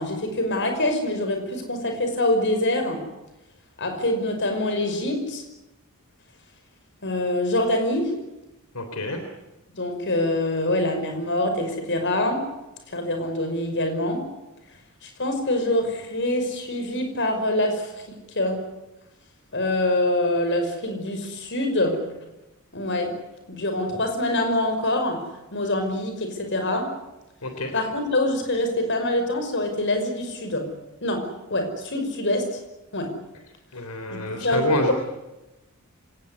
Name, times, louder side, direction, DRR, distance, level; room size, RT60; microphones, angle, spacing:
voice 1, 0.0-3.1 3.8-5.4 7.0-8.1 9.7-12.5 12.9-14.3 15.0-18.6 19.5-22.1 22.7-23.2 23.5-25.2 25.5-27.0 27.7-30.7 31.0-32.6 32.9-33.1 34.1-34.9, left 1 dB, 55° left, 6 dB, 5.6 m, -25 dB
voice 2, 8.7-9.2 27.4-27.7 33.7-34.9, left 2 dB, 80° left, 6 dB, 3.5 m, -27 dB
26.0 x 18.5 x 9.8 m, 0.98 s
head